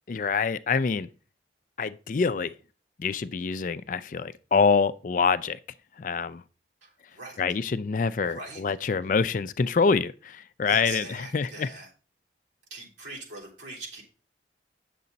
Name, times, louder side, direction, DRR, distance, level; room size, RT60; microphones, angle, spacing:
voice 1, 0.1-1.1 1.8-2.5 3.0-5.6 6.0-6.4 7.4-11.1 11.3-11.7, left 5 dB, 45° left, 0.4 m, -25 dB
voice 2, 6.8-7.4 8.3-8.6 10.6-11.9 12.7-14.0, right 2 dB, 85° right, 3.4 m, -42 dB
8.5 x 6.7 x 4.0 m
head